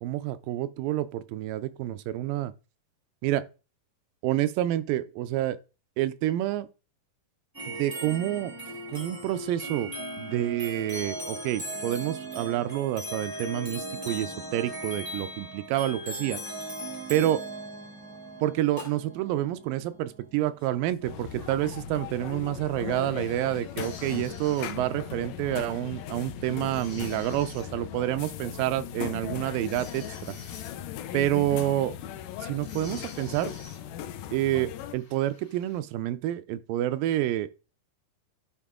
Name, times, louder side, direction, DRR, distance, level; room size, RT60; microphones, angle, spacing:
voice 1, 0.0-2.5 3.2-3.5 4.2-5.6 6.0-6.7 7.7-8.5 8.9-9.9 10.2-16.4 17.1-17.4 18.4-30.3 31.1-32.0 32.4-33.5 34.3-37.6, right 13 dB, 85° right, 2.3 m, -28 dB
sound 1, 7.5-21.6, right 1 dB, 25° right, 0.4 m, -38 dB
sound 2, 21.0-35.0, left 10 dB, 80° left, 2.2 m, -38 dB
sound 3, 23.7-35.8, left 4 dB, 50° left, 1.0 m, -52 dB
11.5 x 4.3 x 3.6 m
omnidirectional pair, 4.0 m